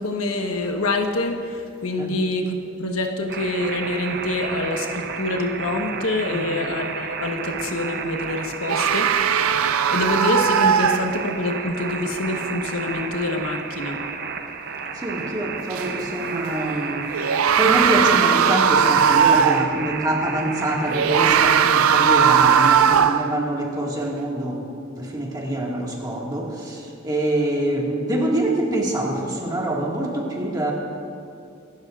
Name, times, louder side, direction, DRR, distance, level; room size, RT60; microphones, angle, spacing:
voice 1, 0.0-9.1 9.6-14.0, left 2 dB, 90° left, 3 dB, 1.2 m, -26 dB
sound 1, 3.3-22.9, right 5 dB, 50° right, 0.8 m, -32 dB
sound 2, 8.7-11.5 15.7-15.8 17.1-19.8 20.9-23.4, right 7 dB, 85° right, 0.5 m, -18 dB
voice 2, 14.9-17.1 17.6-24.6 25.0-30.7, right 1 dB, 20° right, -2 dB, 1.8 m, -25 dB
25.0 x 12.5 x 2.5 m, 2.4 s
head